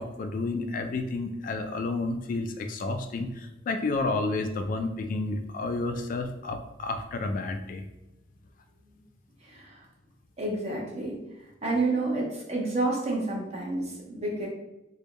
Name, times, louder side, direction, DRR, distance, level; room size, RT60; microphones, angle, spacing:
voice 1, 0.0-7.8, left 3 dB, 45° left, 6 dB, 0.3 m, -31 dB
voice 2, 9.4-9.9 10.4-11.2 11.6-14.5, right 2 dB, 35° right, -2 dB, 0.9 m, -29 dB
3.5 x 2.2 x 3.9 m, 0.97 s
head